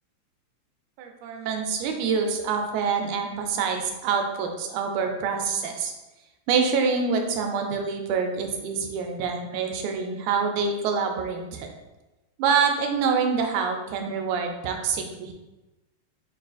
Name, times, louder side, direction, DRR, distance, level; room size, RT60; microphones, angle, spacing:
voice 1, 1.0-5.9 6.5-11.7 12.4-15.3, right 5 dB, 90° right, 3 dB, 2.0 m, -26 dB
5.9 x 2.3 x 2.5 m, 1.1 s
omnidirectional pair, 3.3 m